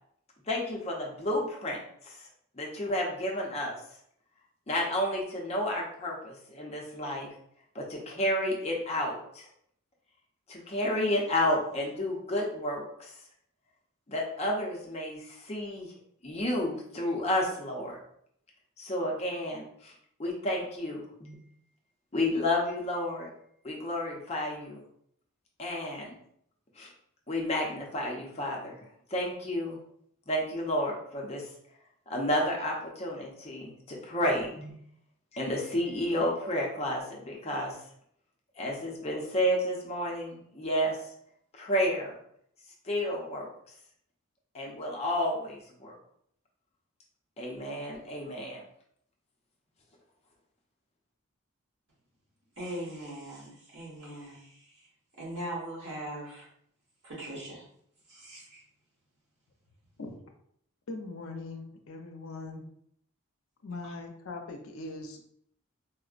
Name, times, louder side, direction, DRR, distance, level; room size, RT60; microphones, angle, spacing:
voice 1, 0.5-2.2 2.6-3.8 4.7-7.3 7.7-9.5 10.5-13.1 14.1-15.9 16.2-18.0 18.8-19.9 20.2-21.3 22.1-23.3 23.6-24.8 25.6-26.2 26.8-26.9 27.3-28.8 29.1-29.8 30.3-31.4 32.1-34.7 35.3-37.7 38.6-41.0 41.6-42.1 42.8-43.5 44.5-45.9 47.4-48.6, left 1 dB, 30° left, 0.6 m, -31 dB
voice 2, 52.6-54.9 55.2-56.5 57.0-57.7 58.1-58.6 63.8-63.9, right 1 dB, 65° right, 1.3 m, -40 dB
voice 3, 60.9-62.6 63.6-65.3, left 2 dB, 80° left, 0.5 m, -41 dB
4.2 x 2.0 x 2.4 m
head